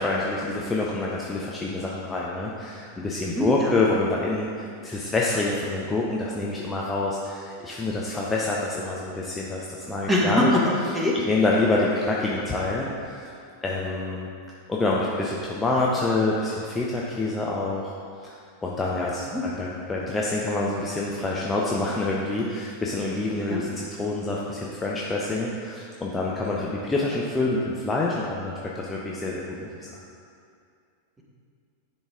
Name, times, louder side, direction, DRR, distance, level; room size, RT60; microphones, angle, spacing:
voice 1, 0.0-10.5 11.3-13.3 13.6-14.3 14.7-17.9 18.2-29.9, left 2 dB, 15° left, -4 dB, 0.6 m, -27 dB
voice 2, 3.2-3.7 10.1-11.2 19.3-19.4 23.4-23.6, left 1 dB, 10° right, -3 dB, 1.2 m, -23 dB
10.0 x 4.1 x 3.7 m, 2.4 s
figure-of-eight pair, 90°, 0 cm